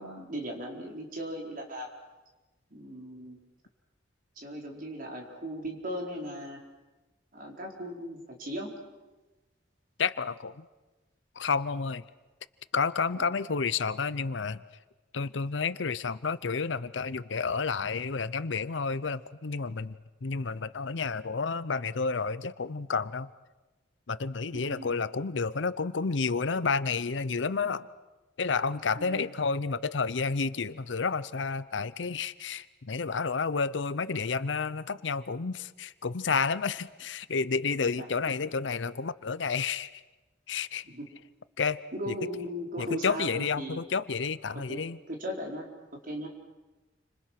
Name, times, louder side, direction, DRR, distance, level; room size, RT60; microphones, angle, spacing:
voice 1, 0.0-1.9 2.7-3.4 4.4-6.6 7.3-8.7 13.1-13.3 24.5-25.0 28.9-29.3 37.8-38.1 40.9-41.1 41.9-43.8 44.5-46.3, equal, 50° right, 0 dB, 4.4 m, -38 dB
voice 2, 10.0-10.6 11.4-12.0 12.7-14.6 15.1-23.3 24.1-27.9 28.4-40.0 40.5-40.8 41.6-41.8 42.1-42.2 42.8-45.0, left 5 dB, 75° left, 16 dB, 0.7 m, -30 dB
30.0 x 25.5 x 6.0 m, 1.2 s
head